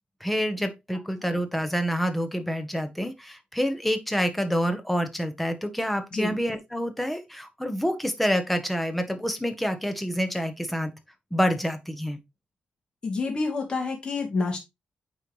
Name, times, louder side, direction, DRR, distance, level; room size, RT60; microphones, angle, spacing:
voice 1, 0.2-10.9 11.3-12.2, equal, 5° left, 1.0 m, -27 dB
voice 2, 13.0-14.6, left 3 dB, 35° left, 2.4 m, -28 dB
8.9 x 4.5 x 3.0 m
wide cardioid pair, 180°, 3 cm